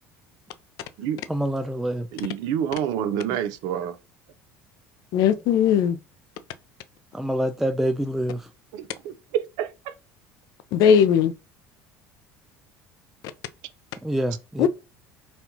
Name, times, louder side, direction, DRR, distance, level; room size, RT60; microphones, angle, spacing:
voice 1, 1.3-2.1 7.1-8.4 14.0-14.7, right 1 dB, 5° right, 0.3 m, -26 dB
voice 2, 2.1-4.0 8.7-9.9, right 9 dB, 70° right, 0.5 m, -28 dB
voice 3, 5.1-6.0 10.7-11.3 14.6-14.7, left 8 dB, 65° left, 0.4 m, -18 dB
4.2 x 2.3 x 2.7 m
supercardioid pair, 95°, 7 cm